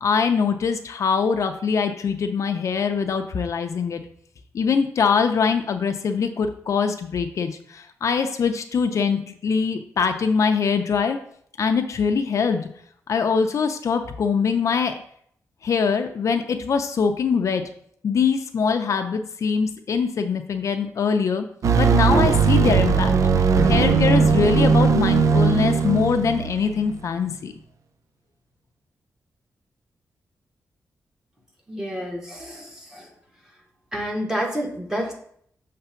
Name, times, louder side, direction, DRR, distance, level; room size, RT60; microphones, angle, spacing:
voice 1, 0.0-4.0 4.5-11.2 11.6-12.7 13.1-15.0 15.6-17.6 18.0-21.5 21.7-27.5, left 5 dB, 60° left, 6 dB, 0.5 m, -23 dB
sound 1, 21.6-26.9, right 5 dB, 65° right, 0.5 m, -19 dB
voice 2, 31.7-33.1 33.9-35.1, equal, 10° right, -1 dB, 1.4 m, -29 dB
6.8 x 3.3 x 5.6 m, 0.65 s
wide cardioid pair, 155°, 6 cm